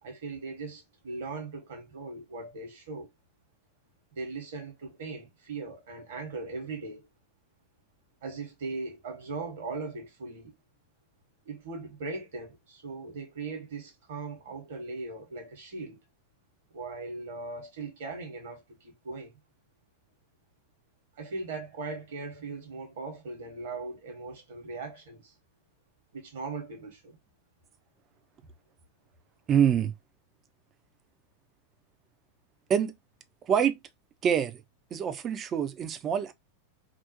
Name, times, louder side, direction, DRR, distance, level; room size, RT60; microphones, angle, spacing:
voice 1, 0.0-3.1 4.1-7.1 8.2-10.6 11.4-16.0 16.7-19.4 21.2-25.3 26.1-27.2, right 3 dB, 55° right, 1.0 m, -39 dB
voice 2, 29.5-29.9 32.7-33.0 33.5-33.8 34.2-34.6 34.9-36.3, right 8 dB, 30° right, 0.4 m, -25 dB
2.5 x 2.0 x 2.7 m
figure-of-eight pair, 90°, 0 cm